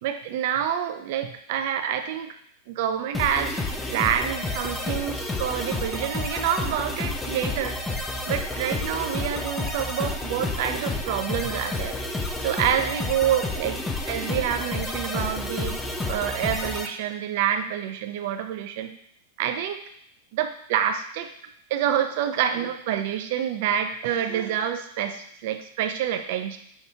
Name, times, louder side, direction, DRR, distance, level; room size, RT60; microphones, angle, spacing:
voice 1, 0.0-2.3 2.7-3.6 3.9-7.8 8.3-12.0 12.4-13.8 14.1-18.9 19.4-19.8 20.3-21.3 21.7-26.6, right 9 dB, 60° right, 7 dB, 0.5 m, -27 dB
sound 1, 3.1-16.9, left 2 dB, 10° left, 0.5 m, -30 dB
5.7 x 3.0 x 2.7 m, 0.68 s
hypercardioid pair, 125°, 0 cm